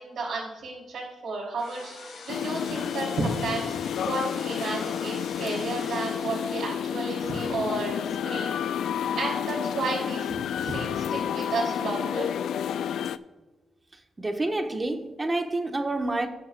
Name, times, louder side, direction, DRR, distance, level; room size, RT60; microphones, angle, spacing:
voice 1, 0.0-3.7 4.0-8.6 9.1-12.3, right 3 dB, 75° right, -5 dB, 2.7 m, -32 dB
sound 1, 1.6-9.7, left 4 dB, 75° left, 3.0 m, -46 dB
sound 2, 2.3-13.2, left 9 dB, 90° left, 0.3 m, -30 dB
voice 2, 14.2-16.3, right 2 dB, 20° right, 5 dB, 1.0 m, -28 dB
19.5 x 7.2 x 2.2 m, 1.2 s
wide cardioid pair, 135°, 0 cm